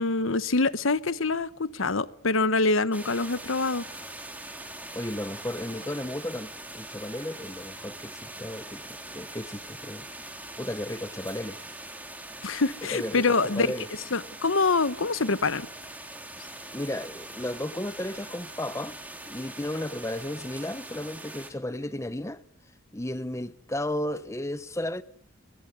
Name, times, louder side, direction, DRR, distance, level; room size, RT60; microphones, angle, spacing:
voice 1, 0.0-3.8 12.4-13.7 14.1-15.7, left 3 dB, 70° left, 1.1 m, -25 dB
sound 1, 2.9-21.5, right 1 dB, 10° right, 3.1 m, -42 dB
voice 2, 4.9-8.8 9.1-10.1 10.6-11.6 12.9-13.9 16.7-19.0 19.3-22.4 22.9-25.0, left 1 dB, 15° left, 1.0 m, -34 dB
22.0 x 22.0 x 9.4 m
head